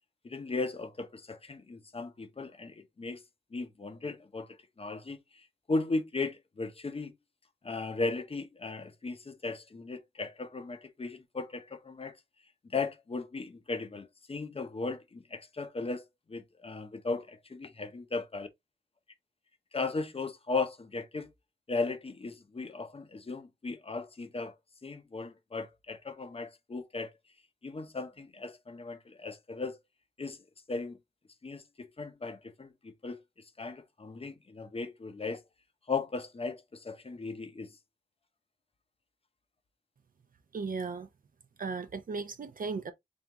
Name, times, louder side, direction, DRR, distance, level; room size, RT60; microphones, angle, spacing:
voice 1, 0.2-3.2 3.5-7.1 7.6-12.2 12.6-16.0 16.3-18.5 19.7-21.3 21.7-24.5 24.8-27.1 27.6-29.8 30.2-30.4 30.7-31.0 31.4-33.2 33.6-35.4 35.9-37.7, left 3 dB, 30° left, 0.7 m, -36 dB
voice 2, 40.5-41.1 41.6-42.9, right 4 dB, 50° right, 0.6 m, -36 dB
3.7 x 3.6 x 2.9 m
wide cardioid pair, 120°, 18 cm